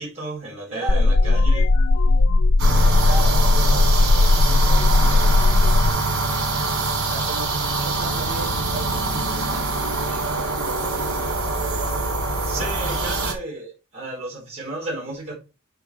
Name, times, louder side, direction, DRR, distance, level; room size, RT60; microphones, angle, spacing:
voice 1, 0.0-1.7 12.4-15.3, right 2 dB, 30° right, 4.3 m, -33 dB
voice 2, 0.7-1.4 2.6-5.4 6.8-11.9, right 3 dB, 45° right, 4.3 m, -37 dB
sound 1, 0.9-5.9, left 2 dB, 80° left, 0.6 m, -17 dB
sound 2, 2.6-13.3, right 3 dB, 75° right, 2.8 m, -24 dB
6.9 x 5.2 x 4.6 m
head